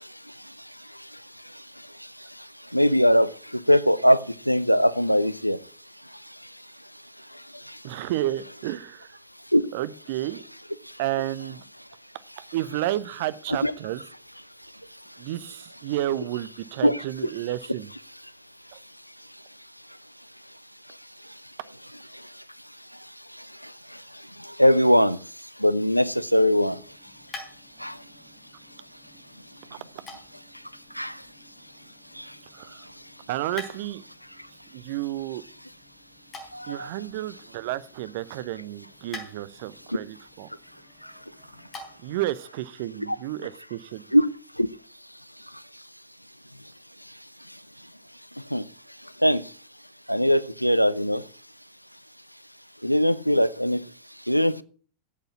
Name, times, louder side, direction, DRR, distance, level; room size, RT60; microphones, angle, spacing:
voice 1, 2.7-3.3 3.5-4.2 4.5-5.6 9.5-9.6 13.6-13.7 16.8-16.9 24.6-25.2 25.6-26.8 27.8-27.9 31.0-31.1 36.8-36.9 44.1-44.3 44.6-44.7 48.5-48.6 49.2-49.4 50.1-51.2 52.8-53.8 54.3-54.6, equal, 90° left, 18 dB, 0.5 m, -20 dB
voice 2, 7.8-9.2 9.7-10.4 11.0-11.6 12.4-14.0 15.2-17.9 32.5-32.8 33.3-34.0 34.7-35.4 36.7-40.5 42.0-44.0, right 14 dB, 50° right, 16 dB, 0.7 m, -31 dB
sound 1, 26.6-42.2, left 3 dB, 20° left, 4.3 m, -48 dB
8.3 x 8.2 x 8.3 m, 0.43 s
figure-of-eight pair, 90°, 0 cm